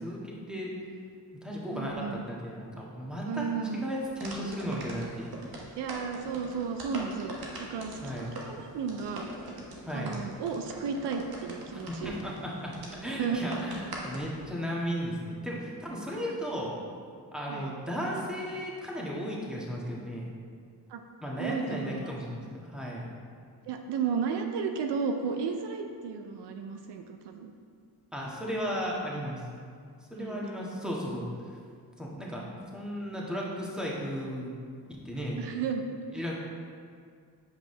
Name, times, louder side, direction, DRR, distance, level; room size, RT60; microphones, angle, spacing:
voice 1, 0.0-0.7 1.4-5.3 8.0-8.3 9.8-10.2 11.9-12.7 13.0-16.8 17.3-20.3 21.2-23.1 28.1-29.4 30.1-31.6 32.0-32.4 32.7-34.5 34.9-35.4 36.1-36.3, equal, ahead, -4 dB, 1.6 m, -35 dB
voice 2, 1.7-2.2 3.2-3.9 5.8-9.3 9.9-12.1 13.1-13.7 16.1-16.4 17.5-17.7 20.9-21.0 21.4-22.1 23.7-27.5 30.2-30.5 35.4-35.8 36.1-36.3, right 6 dB, 80° right, 5 dB, 0.6 m, -34 dB
sound 1, 4.0-14.5, right 1 dB, 60° right, 1.3 m, -43 dB
7.6 x 5.1 x 3.3 m, 2.1 s
cardioid pair, 55°, 41 cm